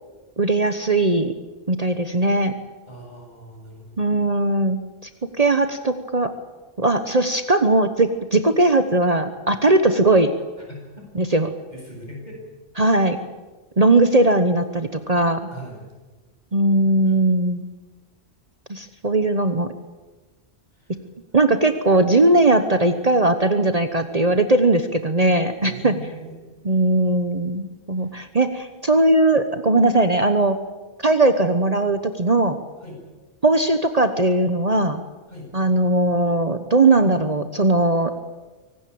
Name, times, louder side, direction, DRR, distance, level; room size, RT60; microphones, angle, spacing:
voice 1, 0.4-1.3 1.7-2.5 4.0-4.8 5.4-6.3 6.8-10.3 11.2-11.5 12.8-13.2 13.8-15.4 16.5-17.7 18.7-19.7 21.3-25.9 26.6-30.6 31.0-32.6 33.4-35.0 35.5-38.1, right 2 dB, 40° right, 9 dB, 1.2 m, -19 dB
voice 2, 2.9-4.1 10.7-11.1 11.7-12.4 14.1-14.3 15.5-15.9 17.0-17.1 20.7-21.0 25.6-26.8 28.0-28.2 32.8-33.0 35.3-35.5, equal, 40° left, -1 dB, 8.2 m, -40 dB
25.0 x 18.0 x 8.7 m, 1.3 s
omnidirectional pair, 1.1 m